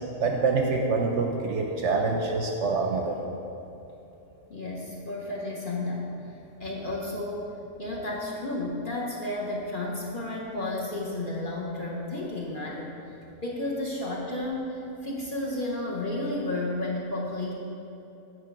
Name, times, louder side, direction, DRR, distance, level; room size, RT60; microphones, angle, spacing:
voice 1, 0.2-3.1, right 4 dB, 65° right, 2 dB, 0.8 m, -26 dB
voice 2, 4.5-6.1 6.6-7.5 7.8-12.9 13.4-17.5, left 2 dB, 45° left, -3 dB, 0.8 m, -32 dB
8.2 x 3.9 x 5.7 m, 2.9 s
omnidirectional pair, 1.5 m